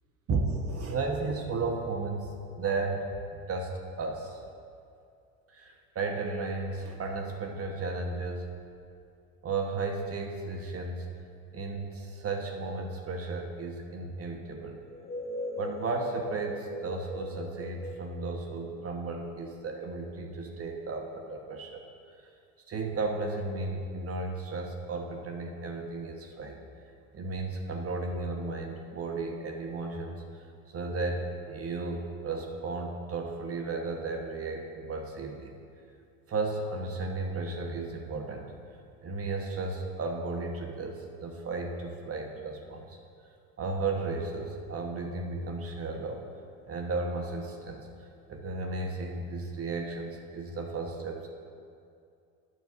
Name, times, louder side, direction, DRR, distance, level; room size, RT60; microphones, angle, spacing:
voice 1, 0.3-3.7 4.0-4.4 5.5-8.5 9.4-11.1 11.5-14.8 15.6-21.8 22.7-26.6 27.1-30.2 30.7-35.5 36.3-38.5 39.0-43.0 43.6-46.2 46.7-47.9 48.3-51.3, right 3 dB, 35° right, 2 dB, 1.1 m, -34 dB
sound 1, 14.9-19.5, left 1 dB, 15° left, 0.8 m, -40 dB
9.4 x 4.6 x 6.9 m, 2.4 s
hypercardioid pair, 85°, 42 cm